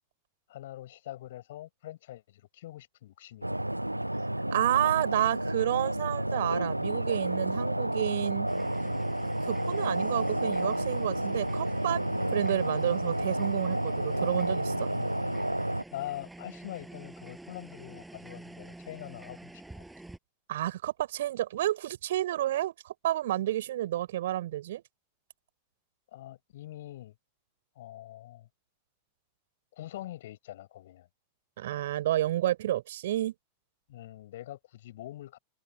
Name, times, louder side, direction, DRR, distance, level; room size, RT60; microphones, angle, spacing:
voice 1, 0.5-3.6 14.9-15.2 15.9-19.8 26.1-27.1 27.8-28.5 29.7-31.1 33.9-35.4, left 14 dB, 55° left, 6.0 m, -44 dB
sound 1, 3.4-15.8, right 1 dB, 85° right, 0.7 m, -30 dB
voice 2, 4.5-8.5 9.4-12.0 12.3-14.9 20.5-24.8 31.6-33.3, right 13 dB, 55° right, 4.0 m, -30 dB
sound 2, 8.5-20.2, right 2 dB, 5° right, 7.2 m, -49 dB
figure-of-eight pair, 90°, 0 cm